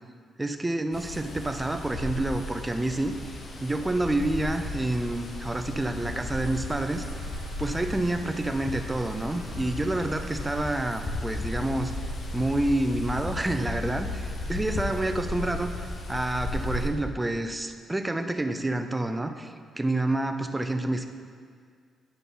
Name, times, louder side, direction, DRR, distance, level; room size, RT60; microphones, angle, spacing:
voice 1, 0.4-3.2 3.6-7.1 7.6-11.9 12.3-15.7 16.1-21.1, right 2 dB, 10° right, 7 dB, 0.4 m, -28 dB
sound 1, 0.9-16.9, left 2 dB, 40° left, 0.9 m, -35 dB
Trumpet, 6.0-10.7, right 4 dB, 75° right, 0.7 m, -52 dB
10.5 x 5.4 x 4.1 m, 2.1 s
cardioid pair, 140°, 0 cm